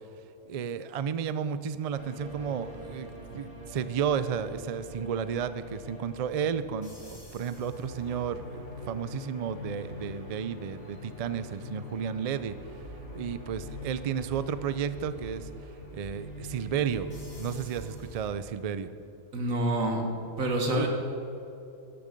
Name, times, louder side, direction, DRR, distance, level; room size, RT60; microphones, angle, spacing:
voice 1, 0.4-12.5 13.1-15.5 15.9-17.1 17.4-18.9 20.7-20.9, right 7 dB, 70° right, 13 dB, 0.3 m, -32 dB
sound 1, 1.9-18.3, left 1 dB, 50° left, 3.5 m, -43 dB
voice 2, 19.3-20.1 20.4-20.9, right 1 dB, 90° right, 2 dB, 2.1 m, -27 dB
13.0 x 11.5 x 5.3 m, 2.8 s
omnidirectional pair, 1.4 m